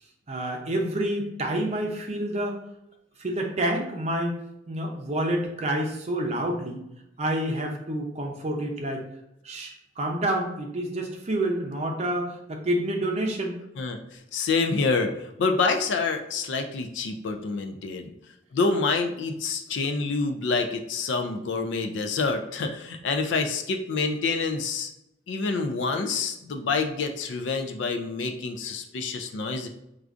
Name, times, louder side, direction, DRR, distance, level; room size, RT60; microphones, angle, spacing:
voice 1, 0.3-2.6 3.2-4.4 4.7-6.8 7.2-9.1 9.4-13.5, right 1 dB, 35° right, 1 dB, 0.6 m, -28 dB
voice 2, 14.3-18.1 18.5-24.9 25.3-29.7, left 4 dB, 70° left, 5 dB, 0.4 m, -27 dB
4.4 x 2.4 x 2.5 m, 0.84 s
head